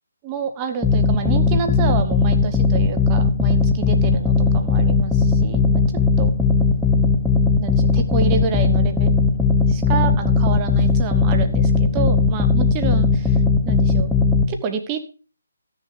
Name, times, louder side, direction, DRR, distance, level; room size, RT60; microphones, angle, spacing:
voice 1, 0.2-5.8 6.2-6.3 7.6-9.1 9.7-13.4 13.6-14.1 14.5-15.0, right 6 dB, 20° right, 6 dB, 1.3 m, -28 dB
sound 1, 0.8-14.4, left 4 dB, 5° left, 1.2 m, -18 dB
13.0 x 6.8 x 5.0 m, 0.35 s
figure-of-eight pair, 145°, 0 cm